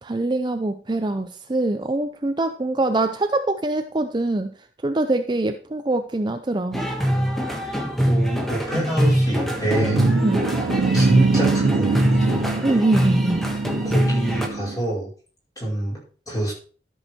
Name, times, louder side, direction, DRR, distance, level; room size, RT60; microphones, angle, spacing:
voice 1, 0.0-4.5 4.8-6.8 10.2-10.4 12.6-13.5, right 2 dB, 25° right, 8 dB, 0.5 m, -23 dB
sound 1, 6.7-14.5, equal, ahead, 1.4 m, -23 dB
voice 2, 7.6-10.0 10.9-12.4 13.8-15.1 15.6-16.0 16.3-16.5, right 1 dB, 20° left, -4 dB, 5.1 m, -26 dB
sound 2, 9.2-14.8, right 4 dB, 80° right, 0.5 m, -25 dB
12.5 x 6.4 x 4.4 m, 0.39 s
head